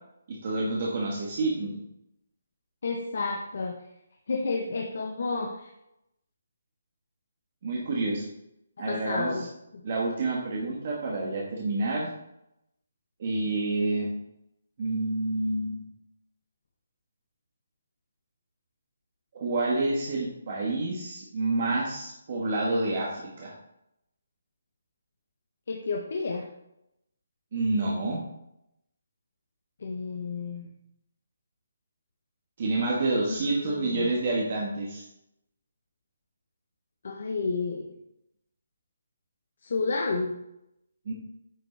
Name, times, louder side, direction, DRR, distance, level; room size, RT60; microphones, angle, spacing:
voice 1, 0.3-1.8 7.6-8.2 8.8-9.5 9.8-12.1 13.2-14.1 14.8-15.8 19.3-23.5 27.5-28.2 32.6-35.0 41.0-41.1, right 2 dB, 35° right, -3 dB, 1.4 m, -28 dB
voice 2, 2.8-3.8 4.3-5.7 8.9-9.5 25.7-26.5 29.8-30.7 33.3-34.1 37.0-37.9 39.6-40.4, left 4 dB, 55° left, 1 dB, 0.8 m, -31 dB
8.9 x 5.2 x 3.3 m, 0.83 s
hypercardioid pair, 175°, 0 cm